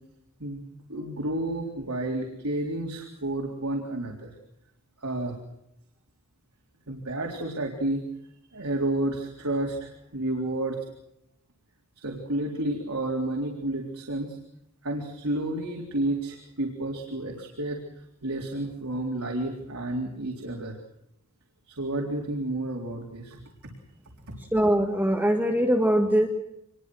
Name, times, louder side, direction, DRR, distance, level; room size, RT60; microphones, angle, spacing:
voice 1, 0.9-4.3 5.0-5.4 6.9-8.0 8.5-10.8 12.0-14.4 14.8-17.8 18.2-20.7 21.7-23.7 24.3-24.4, right 1 dB, 75° right, 0 dB, 3.9 m, -31 dB
voice 2, 24.5-26.3, equal, 10° right, 3 dB, 1.8 m, -22 dB
25.5 x 22.0 x 6.4 m, 0.81 s
head